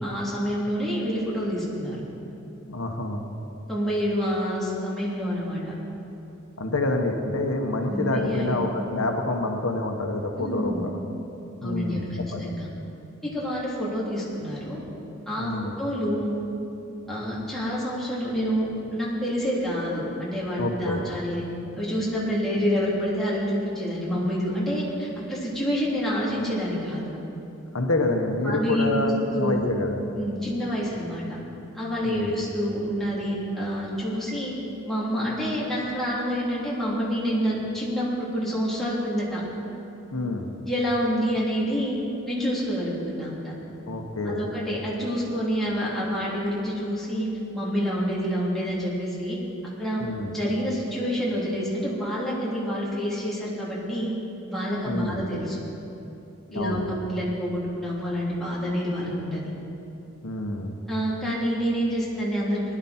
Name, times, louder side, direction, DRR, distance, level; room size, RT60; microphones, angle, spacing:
voice 1, 0.0-2.0 3.7-5.7 7.9-8.5 10.4-10.8 11.6-12.7 13.3-14.8 15.3-16.4 17.1-21.4 21.8-27.0 28.4-29.7 30.1-31.4 31.7-34.5 34.9-39.4 40.7-42.0 42.2-43.5 44.2-47.3 47.5-49.4 49.8-50.0 50.3-54.1 54.5-55.6 56.5-59.4 60.9-62.6, equal, ahead, -8 dB, 3.4 m, -27 dB
voice 2, 2.7-3.3 6.6-11.0 11.6-12.5 15.4-15.7 20.6-21.1 27.7-30.0 30.9-31.0 32.0-32.4 40.1-40.5 43.9-44.5 50.0-50.3 54.8-55.2 56.5-56.8 60.2-60.8, left 2 dB, 90° left, 3 dB, 1.2 m, -27 dB
19.5 x 11.5 x 4.4 m, 2.9 s
head